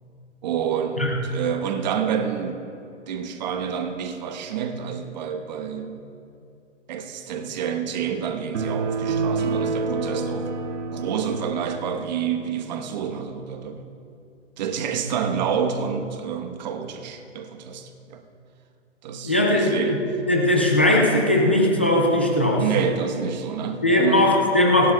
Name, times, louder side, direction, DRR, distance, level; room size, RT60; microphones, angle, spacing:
voice 1, 0.4-2.6 3.1-6.0 6.9-10.5 10.9-13.9 14.6-18.2 19.0-20.0 22.6-24.3, right 7 dB, 40° right, 6 dB, 1.1 m, -28 dB
sound 1, 8.5-12.1, right 4 dB, 80° right, 1.8 m, -27 dB
voice 2, 19.2-20.0 20.3-22.6 23.8-24.9, left 1 dB, 10° left, -1 dB, 0.3 m, -19 dB
29.5 x 11.5 x 2.3 m, 2.5 s
hypercardioid pair, 155°, 36 cm